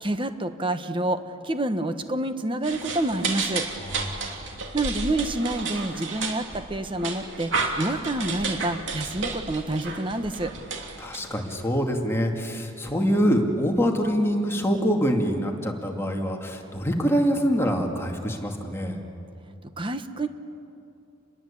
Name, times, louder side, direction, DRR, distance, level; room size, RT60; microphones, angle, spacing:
voice 1, 0.0-3.7 4.7-10.5 19.6-20.3, right 1 dB, 25° right, 9 dB, 1.3 m, -28 dB
sound 1, 2.6-11.6, right 4 dB, 65° right, 3.1 m, -32 dB
voice 2, 11.0-19.0, equal, 10° left, 1 dB, 2.4 m, -25 dB
29.0 x 21.5 x 8.6 m, 2.6 s
head